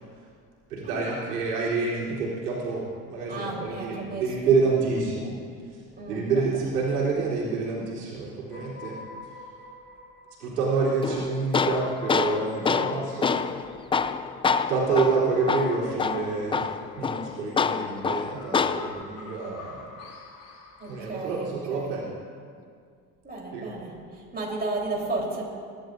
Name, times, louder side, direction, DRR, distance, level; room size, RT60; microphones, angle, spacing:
voice 1, 0.7-5.4 5.6-9.3 10.4-13.3 14.7-19.9 20.8-22.1 23.5-23.7, right 4 dB, 85° right, -6 dB, 3.7 m, -28 dB
voice 2, 3.3-4.2 6.0-6.4 20.8-22.0 23.2-25.4, right 2 dB, 20° right, -3 dB, 3.9 m, -33 dB
sound 1, 8.5-21.6, left 2 dB, 50° left, 2.6 m, -47 dB
Tools, 11.0-19.0, left 5 dB, 15° left, 0.3 m, -27 dB
22.5 x 11.5 x 2.7 m, 2.2 s
hypercardioid pair, 70°, 46 cm